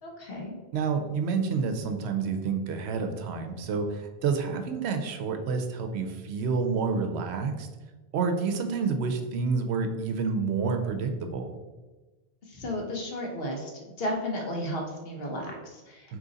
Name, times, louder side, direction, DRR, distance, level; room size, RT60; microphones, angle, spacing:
voice 1, 0.0-0.6 12.4-13.7 14.0-16.2, left 1 dB, 65° left, 0 dB, 1.1 m, -34 dB
voice 2, 0.7-7.7 8.1-11.5 16.1-16.2, right 5 dB, 80° right, 6 dB, 0.8 m, -29 dB
3.8 x 3.0 x 3.8 m, 1.2 s
omnidirectional pair, 1.1 m